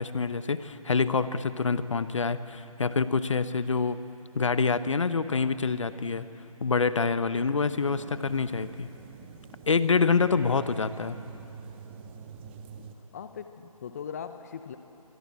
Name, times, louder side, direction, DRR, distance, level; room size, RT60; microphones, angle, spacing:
voice 1, 0.0-4.0 4.3-6.2 6.6-8.9 9.7-11.2, left 4 dB, 55° left, 13 dB, 1.1 m, -26 dB
sound 1, 7.6-12.9, right 6 dB, 20° right, 1.3 m, -47 dB
voice 2, 12.8-14.8, left 7 dB, 25° left, 9 dB, 0.7 m, -40 dB
24.5 x 23.5 x 8.7 m, 2.9 s
figure-of-eight pair, 150°, 19 cm